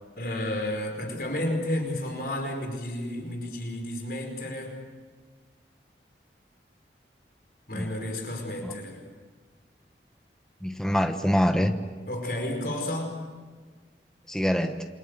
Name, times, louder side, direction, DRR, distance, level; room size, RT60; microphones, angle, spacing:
voice 1, 0.2-4.7 7.7-9.0 12.1-13.1, left 1 dB, 55° left, 2 dB, 5.0 m, -31 dB
voice 2, 10.6-11.8 14.3-14.9, equal, 5° left, 6 dB, 1.1 m, -25 dB
28.5 x 25.0 x 8.1 m, 1.5 s
head